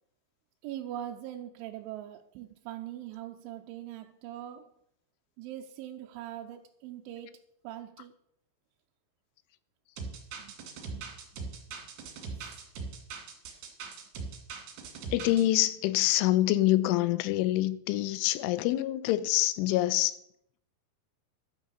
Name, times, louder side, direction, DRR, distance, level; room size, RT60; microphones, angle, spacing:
voice 1, 0.6-4.7 5.4-7.4 7.6-8.1 10.4-10.5 10.9-11.2 11.7-11.8 12.3-12.6, right 12 dB, 90° right, 3.1 m, -42 dB
sound 1, 10.0-15.4, right 5 dB, 65° right, 4.2 m, -41 dB
voice 2, 15.1-20.1, left 15 dB, 85° left, 3.1 m, -26 dB
12.0 x 8.1 x 6.3 m
omnidirectional pair, 5.5 m